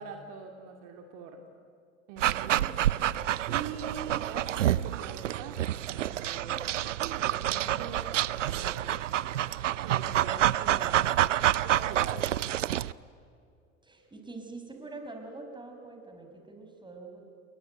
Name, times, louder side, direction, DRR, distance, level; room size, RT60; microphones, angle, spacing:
voice 1, 0.0-1.5 2.1-5.6 6.0-6.7 7.0-8.0 8.3-9.2 9.8-11.3 11.6-12.7, right 6 dB, 50° right, 4 dB, 2.5 m, -43 dB
Dog, 2.2-12.9, right 12 dB, 75° right, 0.6 m, -28 dB
voice 2, 13.8-17.2, right 3 dB, 10° right, 3 dB, 5.7 m, -44 dB
29.5 x 21.5 x 9.2 m, 2.3 s
figure-of-eight pair, 70°, 37 cm